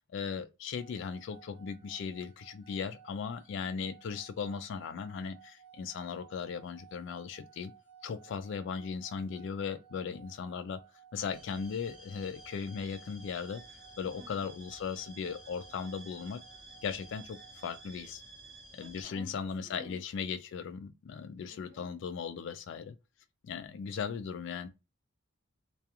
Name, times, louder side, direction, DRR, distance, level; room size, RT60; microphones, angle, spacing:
voice 1, 0.1-7.7 8.0-10.8 11.1-13.6 14.0-16.4 16.8-18.2 18.7-23.0 23.4-24.7, left 6 dB, 60° left, 0.3 m, -38 dB
sound 1, 0.7-17.9, right 9 dB, 85° right, 0.5 m, -58 dB
voice 2, 3.5-4.0 14.1-14.5 18.8-20.0 21.5-22.0, equal, 35° right, 0.7 m, -53 dB
sound 2, 11.3-19.0, right 2 dB, 5° right, 0.8 m, -53 dB
2.3 x 2.3 x 2.8 m
head